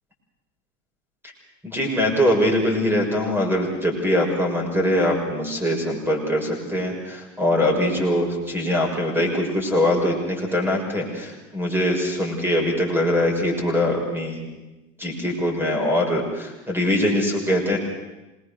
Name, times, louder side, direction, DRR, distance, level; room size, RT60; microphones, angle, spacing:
voice 1, 1.6-14.5 15.0-17.8, left 1 dB, 5° right, 1 dB, 6.4 m, -22 dB
26.5 x 20.5 x 6.7 m, 1.1 s
figure-of-eight pair, 85°, 39 cm